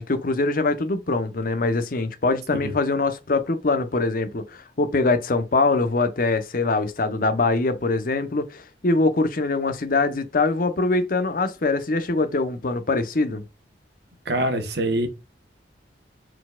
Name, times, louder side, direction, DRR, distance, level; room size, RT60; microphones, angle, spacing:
voice 1, 0.0-13.4, left 3 dB, 50° left, 0.7 m, -23 dB
voice 2, 14.2-15.1, right 1 dB, 60° right, 1.1 m, -24 dB
4.7 x 4.0 x 2.3 m
head